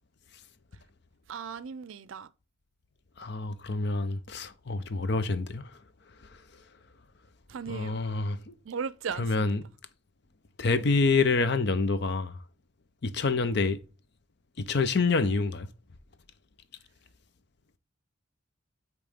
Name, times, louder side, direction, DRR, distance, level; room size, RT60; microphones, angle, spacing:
voice 1, 1.3-2.3 7.5-8.0 8.7-9.6, right 6 dB, 75° right, 0.4 m, -37 dB
voice 2, 3.2-5.6 7.7-8.5 9.2-9.6 10.6-12.4 13.0-13.8 14.6-15.7, left 4 dB, 55° left, 0.6 m, -27 dB
8.5 x 3.1 x 3.5 m
head